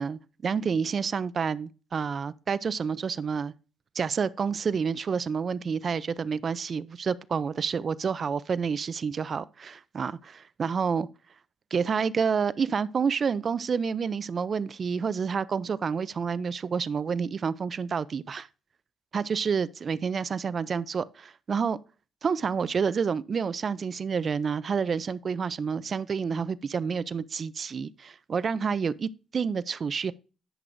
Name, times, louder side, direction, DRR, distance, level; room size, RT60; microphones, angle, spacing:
voice 1, 0.0-3.5 3.9-11.1 11.7-18.5 19.1-21.8 22.2-30.1, right 6 dB, 45° right, 0.3 m, -29 dB
11.0 x 7.6 x 2.6 m
cardioid pair, 90°, 0 cm